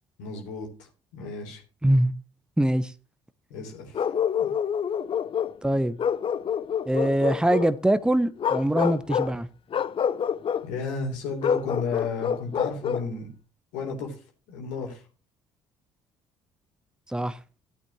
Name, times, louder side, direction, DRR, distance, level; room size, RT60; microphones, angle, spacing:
voice 1, 0.2-0.7 1.1-1.6 3.5-4.1 4.4-4.5 10.6-13.3 13.7-14.1 14.5-15.0, left 4 dB, 70° left, 3.8 m, -33 dB
voice 2, 1.8-2.1 2.6-2.9 5.6-6.0 6.8-9.5 17.1-17.4, right 1 dB, 5° right, 0.9 m, -23 dB
Bark, 3.9-5.6 6.0-7.7 8.4-9.4 9.7-10.7 11.4-13.1, left 8 dB, 40° left, 0.6 m, -27 dB
15.0 x 8.6 x 3.1 m
hypercardioid pair, 50°, 14 cm